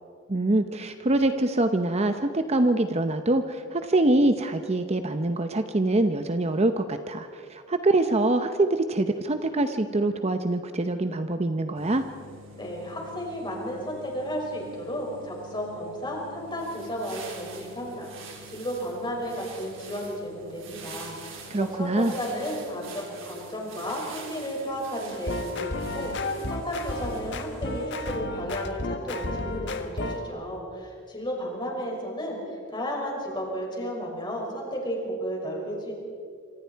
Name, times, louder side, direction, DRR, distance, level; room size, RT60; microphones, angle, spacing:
voice 1, 0.3-12.0 21.5-22.1, right 2 dB, 30° right, 8 dB, 0.8 m, -24 dB
sound 1, 11.7-27.9, equal, 85° right, 5.6 m, -49 dB
voice 2, 12.6-35.9, equal, 25° left, -2 dB, 6.1 m, -33 dB
sound 2, 16.4-27.4, right 5 dB, 70° right, 4.3 m, -46 dB
sound 3, 25.1-30.2, left 2 dB, 60° left, 1.5 m, -32 dB
27.0 x 26.5 x 4.6 m, 2.3 s
head